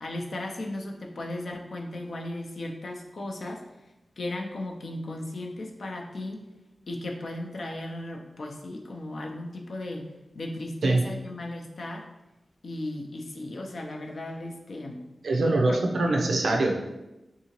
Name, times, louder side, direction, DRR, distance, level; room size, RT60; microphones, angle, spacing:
voice 1, 0.0-3.6 4.2-6.4 6.9-12.1 12.6-15.1 15.7-15.8, left 1 dB, 75° left, 1 dB, 0.5 m, -36 dB
voice 2, 15.2-16.8, right 2 dB, 90° right, 1 dB, 0.5 m, -23 dB
3.6 x 2.7 x 2.9 m, 0.98 s
wide cardioid pair, 75°, 0 cm